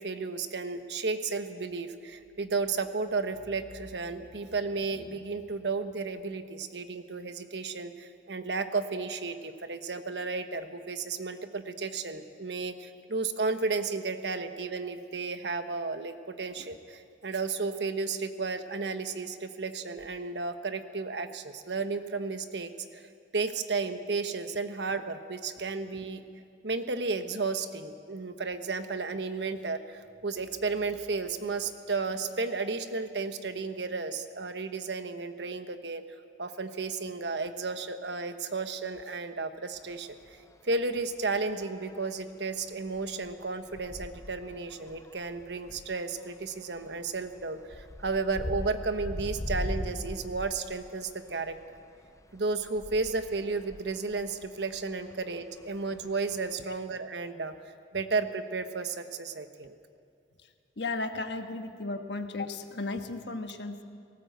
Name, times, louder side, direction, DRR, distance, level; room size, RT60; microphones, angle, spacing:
voice 1, 0.0-23.1 23.3-26.2 26.6-36.0 36.4-40.4 40.6-51.6 52.3-57.5 57.9-59.8, right 4 dB, 75° right, 9 dB, 1.1 m, -33 dB
sound 1, 39.8-39.9 40.3-40.6 41.6-42.1 42.6-51.8 52.0-56.5, left 1 dB, 20° left, 0.5 m, -40 dB
voice 2, 60.8-63.8, left 3 dB, 70° left, 6 dB, 1.3 m, -35 dB
18.5 x 18.0 x 8.1 m, 2.4 s
head